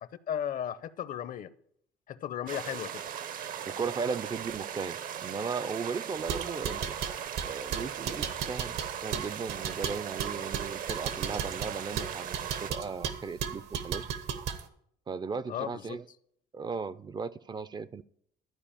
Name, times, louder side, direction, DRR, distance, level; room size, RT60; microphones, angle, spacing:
voice 1, 0.3-1.5 2.1-3.0 15.5-16.0, left 9 dB, 55° left, 0.7 m, -35 dB
sound 1, 2.5-12.7, right 9 dB, 55° right, 0.7 m, -38 dB
voice 2, 3.7-7.0 7.4-14.0 15.1-16.1 16.5-18.0, right 5 dB, 25° right, 0.4 m, -37 dB
sound 2, 6.2-14.6, right 7 dB, 80° right, 1.2 m, -35 dB
12.5 x 4.8 x 8.7 m
cardioid pair, 110°, 17 cm